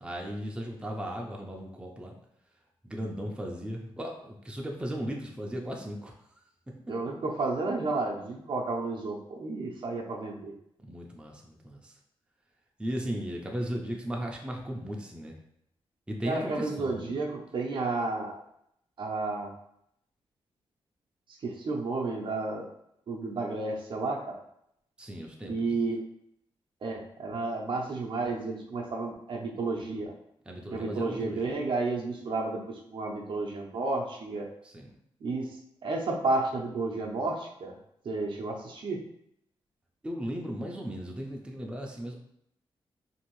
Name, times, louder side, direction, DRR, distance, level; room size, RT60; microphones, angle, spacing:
voice 1, 0.0-2.1 2.8-6.1 10.8-11.9 12.8-15.4 16.1-17.1 25.0-25.8 30.5-31.6 34.6-35.0 40.0-42.1, equal, 10° right, 0 dB, 0.5 m, -36 dB
voice 2, 6.9-10.5 16.2-18.4 19.0-19.5 21.4-22.7 23.1-24.2 25.4-26.0 26.8-30.1 30.7-34.5 35.2-35.5 35.8-37.7 38.0-39.0, right 3 dB, 55° right, 0 dB, 0.6 m, -31 dB
2.7 x 2.5 x 3.0 m, 0.75 s
cardioid pair, 90°, 10 cm